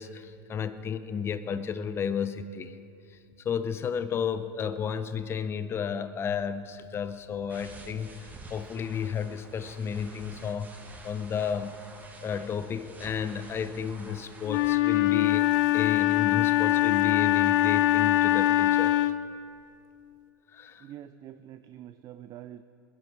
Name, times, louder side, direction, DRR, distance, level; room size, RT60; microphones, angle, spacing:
voice 1, 0.0-2.8 3.4-11.8 12.2-19.1 20.5-20.9, left 7 dB, 20° left, 12 dB, 0.7 m, -33 dB
sound 1, 7.5-14.7, right 2 dB, 15° right, 1.5 m, -49 dB
Wind instrument woodwind instrument, 14.5-19.3, left 15 dB, 60° left, 0.7 m, -23 dB
voice 2, 20.8-22.6, right 11 dB, 30° right, 11 dB, 0.5 m, -45 dB
21.5 x 11.0 x 6.0 m, 2.4 s
supercardioid pair, 130°, 12 cm